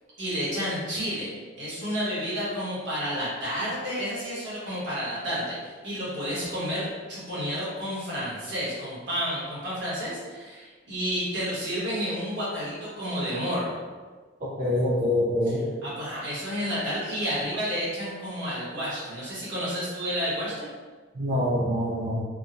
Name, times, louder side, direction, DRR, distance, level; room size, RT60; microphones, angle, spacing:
voice 1, 0.2-1.3 1.6-13.8 15.5-15.6 15.8-20.7, equal, 65° right, -9 dB, 1.4 m, -30 dB
voice 2, 14.4-15.6 21.2-22.2, left 1 dB, 40° right, -8 dB, 0.5 m, -25 dB
3.6 x 2.2 x 2.6 m, 1.4 s
head